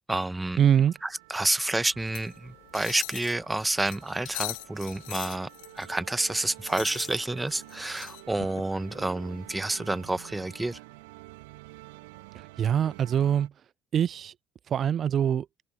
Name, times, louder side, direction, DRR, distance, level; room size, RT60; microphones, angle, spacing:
voice 1, 0.0-0.6 1.0-5.5 5.7-10.8, right 2 dB, 10° right, 1.4 m, -29 dB
voice 2, 0.6-0.9 12.3-13.5 13.9-14.3 14.7-15.5, right 9 dB, 45° right, 0.5 m, -24 dB
sound 1, 0.7-13.5, right 23 dB, 70° right, 1.4 m, -49 dB
sound 2, 2.0-10.8, left 28 dB, 70° left, 1.6 m, -43 dB
figure-of-eight pair, 55°, 0 cm